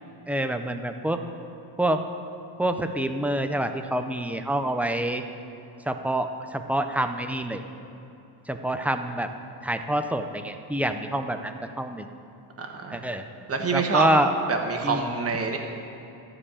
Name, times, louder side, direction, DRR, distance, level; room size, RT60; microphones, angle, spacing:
voice 1, 0.3-1.2 1.8-2.0 2.6-5.2 5.9-7.6 8.5-9.3 9.6-12.1 12.9-13.2 13.7-14.3 14.8-15.0, right 1 dB, 5° right, 7 dB, 0.5 m, -26 dB
voice 2, 12.6-13.0 13.5-14.1 14.5-15.6, right 4 dB, 30° right, 2 dB, 1.4 m, -26 dB
12.5 x 4.8 x 8.7 m, 2.8 s
cardioid pair, 105°, 46 cm